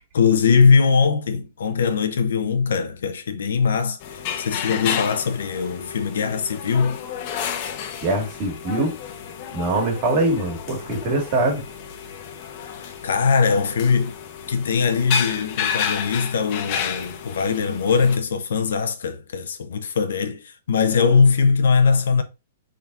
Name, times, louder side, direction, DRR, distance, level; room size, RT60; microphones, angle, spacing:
voice 1, 0.1-4.0 4.4-7.0 12.8-14.2 14.5-22.2, left 5 dB, 80° left, 0.7 m, -21 dB
sound 1, 4.0-18.2, left 7 dB, 45° left, 0.7 m, -31 dB
voice 2, 8.0-9.0 9.5-11.6, right 2 dB, 40° right, 1.7 m, -23 dB
4.2 x 3.7 x 2.4 m
hypercardioid pair, 145°, 0 cm